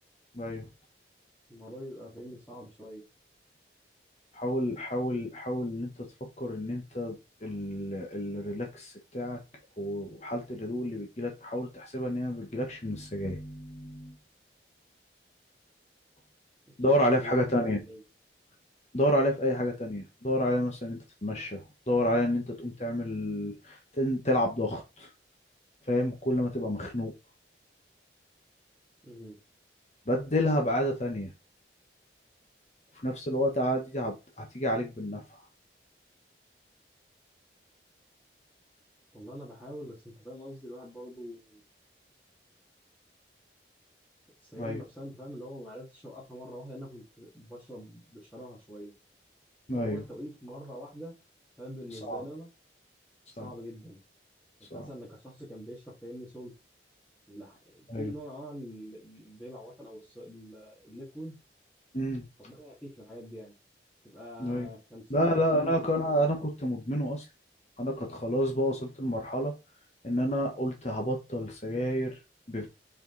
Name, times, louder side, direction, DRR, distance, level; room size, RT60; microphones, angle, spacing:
voice 1, 0.3-0.6 4.3-6.1 6.4-9.4 9.8-14.1 16.8-17.8 18.9-25.1 25.9-27.1 30.1-31.3 33.0-35.2 44.6-44.8 49.7-50.0 51.9-52.2 53.4-53.5 54.7-54.8 57.9-58.1 61.9-62.3 64.4-64.7 65.1-67.2 67.8-69.5 70.0-72.2 72.5-72.7, equal, 35° left, 1.2 m, -29 dB
voice 2, 1.5-3.0 16.7-18.0 29.0-29.4 39.1-41.6 44.4-48.9 49.7-51.2 51.6-52.5 53.4-54.0 54.7-56.5 57.3-61.4 62.4-63.5 64.0-65.9, equal, 10° left, 2.2 m, -44 dB
5.2 x 5.0 x 3.9 m
head